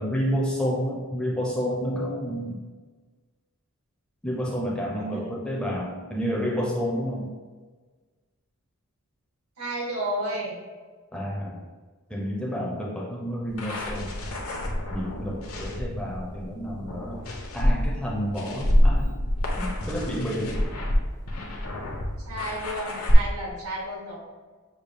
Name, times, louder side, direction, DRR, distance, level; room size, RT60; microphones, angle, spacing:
voice 1, 0.0-2.6 4.2-7.3 11.1-11.7 12.1-14.1 14.9-17.2 17.5-19.1 19.6-20.5, equal, 5° left, -3 dB, 0.5 m, -30 dB
voice 2, 4.9-5.4 9.6-10.6 12.5-12.9 22.3-24.2, right 1 dB, 75° right, -3 dB, 1.3 m, -33 dB
sound 1, 13.5-23.1, left 1 dB, 75° left, 0.8 m, -27 dB
6.2 x 2.3 x 3.4 m, 1.4 s
head